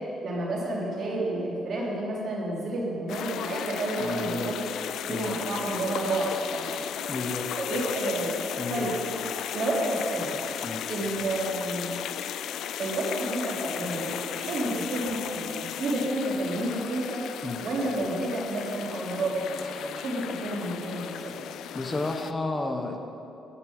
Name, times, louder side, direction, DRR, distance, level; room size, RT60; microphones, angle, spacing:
voice 1, 0.2-4.6 5.0-6.9 7.6-8.3 8.7-8.9 9.5-10.3 10.9-12.0 12.8-17.2 17.6-21.3, right 1 dB, 60° right, -3 dB, 3.1 m, -30 dB
sound 1, 3.1-22.3, left 9 dB, 80° left, 0.4 m, -35 dB
voice 2, 4.0-4.5 5.1-5.4 7.1-7.5 8.6-8.9 10.6-10.8 17.4-17.6 21.7-23.0, left 2 dB, 25° left, 4 dB, 1.0 m, -32 dB
11.0 x 6.1 x 8.6 m, 2.7 s
cardioid pair, 90°, 0 cm